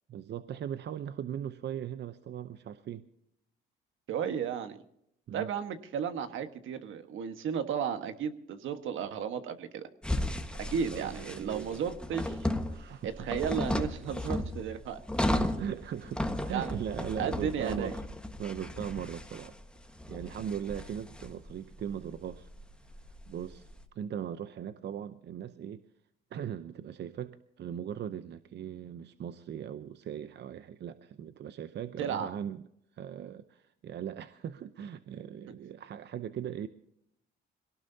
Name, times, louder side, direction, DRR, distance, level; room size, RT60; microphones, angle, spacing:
voice 1, 0.1-3.0 5.3-5.5 10.7-11.8 12.7-13.2 15.6-18.0 18.4-19.6 19.8-22.5 23.1-23.6 23.9-25.8 26.3-32.6 32.9-36.7, right 9 dB, 60° right, 12 dB, 0.7 m, -39 dB
voice 2, 4.1-4.8 5.3-9.9 10.6-12.4 13.0-15.0 16.5-16.7 17.2-17.9 32.0-32.3, right 7 dB, 80° right, 9 dB, 1.5 m, -34 dB
sound 1, 10.0-23.8, left 1 dB, 5° left, 1.5 m, -35 dB
22.0 x 18.0 x 2.8 m, 0.74 s
cardioid pair, 90°, 20 cm